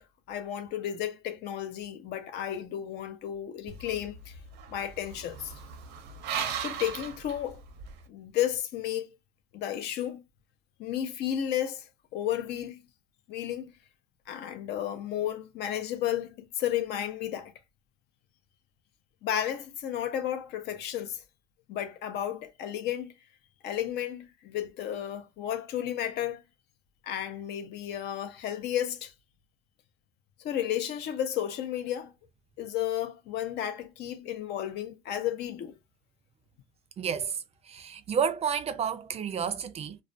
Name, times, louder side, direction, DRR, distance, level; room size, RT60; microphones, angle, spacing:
voice 1, 0.0-4.4 4.7-5.5 6.6-7.6 8.1-9.1 9.5-10.2 10.8-11.9 12.1-12.8 13.3-13.8 14.3-17.5 19.2-21.2 21.7-23.1 23.6-26.4 27.0-29.1 30.4-32.1 32.6-35.8, left 11 dB, 80° left, 0.6 m, -33 dB
sound 1, 3.7-8.0, right 7 dB, 85° right, 0.6 m, -38 dB
voice 2, 37.0-40.0, right 7 dB, 40° right, 0.4 m, -31 dB
2.4 x 2.1 x 2.5 m
cardioid pair, 110°, 17 cm